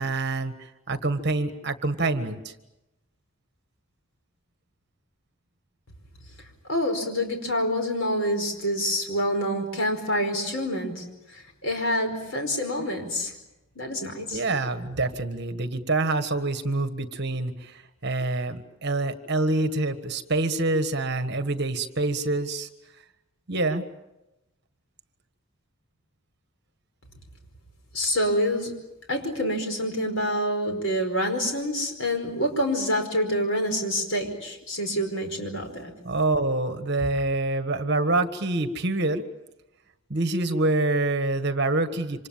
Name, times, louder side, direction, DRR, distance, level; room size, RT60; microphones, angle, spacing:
voice 1, 0.0-2.5 14.3-22.7 23.5-23.8 36.0-39.2 40.1-42.3, right 2 dB, 50° right, 9 dB, 1.6 m, -26 dB
voice 2, 6.7-11.0 11.3-13.3 13.7-14.4 27.9-28.7 29.1-35.9, equal, 60° left, 5 dB, 5.0 m, -27 dB
27.0 x 26.0 x 7.4 m, 0.94 s
head